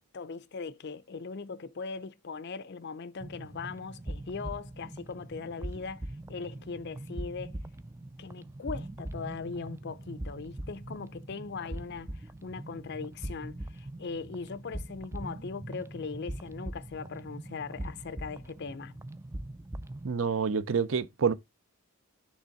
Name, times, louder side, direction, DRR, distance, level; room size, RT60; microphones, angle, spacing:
voice 1, 0.0-7.6 8.2-19.0, left 4 dB, 50° left, 0.5 m, -40 dB
sound 1, 3.2-20.1, right 1 dB, 10° right, 0.3 m, -42 dB
voice 2, 20.0-21.3, right 6 dB, 60° right, 0.6 m, -27 dB
6.4 x 3.4 x 5.7 m
head